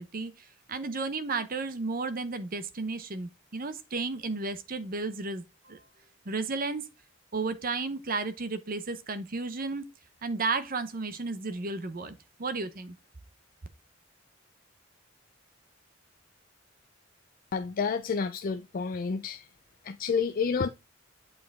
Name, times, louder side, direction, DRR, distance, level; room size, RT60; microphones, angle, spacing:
voice 1, 0.0-5.8 6.2-6.8 7.3-9.9 10.2-12.9, right 3 dB, 45° right, 0.8 m, -33 dB
voice 2, 17.5-19.5 19.8-20.7, left 5 dB, 45° left, 0.4 m, -29 dB
8.2 x 4.8 x 3.6 m
head